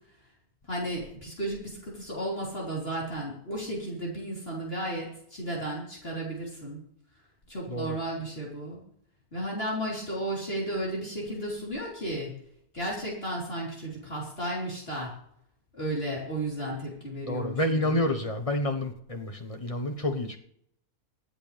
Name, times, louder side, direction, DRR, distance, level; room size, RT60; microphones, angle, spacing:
voice 1, 0.7-6.8 7.5-8.8 9.3-12.3 12.7-15.1 15.7-18.0, right 1 dB, 40° left, -4 dB, 4.1 m, -34 dB
voice 2, 7.7-8.0 17.2-20.4, left 1 dB, 25° left, 4 dB, 1.2 m, -29 dB
24.5 x 8.3 x 3.4 m, 0.70 s
omnidirectional pair, 1.5 m